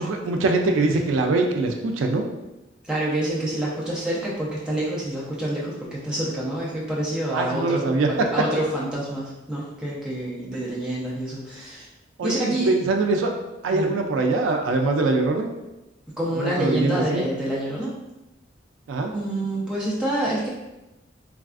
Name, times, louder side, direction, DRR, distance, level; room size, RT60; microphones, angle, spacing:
voice 1, 0.0-2.2 7.3-8.4 12.2-13.3 13.6-15.5 16.3-17.2 18.9-19.1, right 3 dB, 80° right, 3 dB, 0.3 m, -23 dB
voice 2, 2.9-11.9 12.2-12.8 13.7-14.0 16.2-17.9 19.1-20.5, right 1 dB, 5° right, -7 dB, 0.6 m, -27 dB
3.2 x 2.3 x 2.4 m, 0.99 s
head